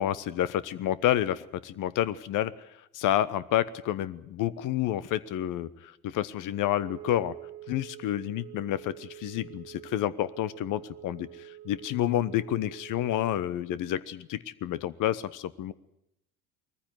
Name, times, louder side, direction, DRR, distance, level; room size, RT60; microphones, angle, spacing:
voice 1, 0.0-2.5 2.9-7.3 7.7-15.7, left 12 dB, 45° left, 18 dB, 1.1 m, -29 dB
Wind instrument woodwind instrument, 6.5-13.6, right 14 dB, 50° right, 1.1 m, -47 dB
21.0 x 14.5 x 9.4 m, 0.83 s
hypercardioid pair, 75°, 43 cm